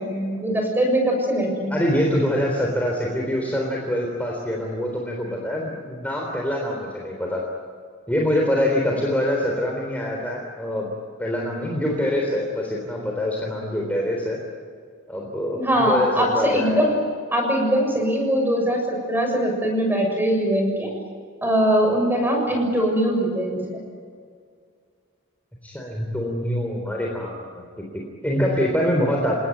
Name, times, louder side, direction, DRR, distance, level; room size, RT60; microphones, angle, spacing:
voice 1, 0.0-1.8 15.6-17.0 17.3-20.9 21.4-23.6, equal, 10° right, 2 dB, 6.9 m, -21 dB
voice 2, 1.7-7.4 8.1-10.9 11.2-14.4 15.1-16.8 22.5-22.6 25.6-27.6 27.9-29.3, left 1 dB, 5° left, -1 dB, 3.8 m, -25 dB
29.5 x 19.0 x 9.4 m, 2.1 s
head